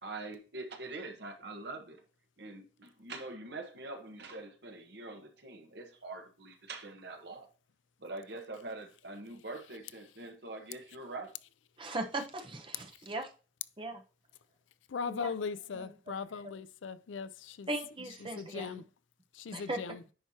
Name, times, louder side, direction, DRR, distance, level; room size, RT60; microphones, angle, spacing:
voice 1, 0.0-2.0 2.4-7.5 8.0-11.3, right 2 dB, 60° right, 1.3 m, -44 dB
voice 2, 11.8-13.3 13.8-14.0 15.0-15.3 15.8-15.9 17.7-18.7 19.5-19.8, right 2 dB, 25° right, 0.9 m, -38 dB
voice 3, 14.9-17.7 18.2-18.8 19.3-20.0, left 5 dB, 75° left, 0.4 m, -39 dB
10.0 x 4.5 x 2.8 m
head